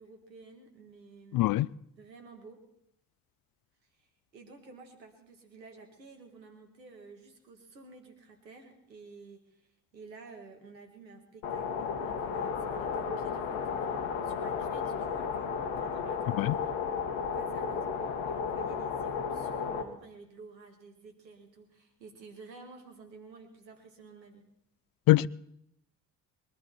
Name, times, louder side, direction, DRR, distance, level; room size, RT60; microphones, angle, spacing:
voice 1, 0.0-1.4 2.0-2.6 4.3-9.4 9.9-16.8 17.3-17.9 18.3-24.4, right 4 dB, 90° right, 2.0 m, -52 dB
voice 2, 1.3-1.7 16.4-16.5 25.1-25.3, left 16 dB, 45° left, 0.5 m, -23 dB
sound 1, 11.4-19.8, left 6 dB, 65° left, 1.6 m, -33 dB
22.5 x 12.0 x 4.3 m
figure-of-eight pair, 45°, 49 cm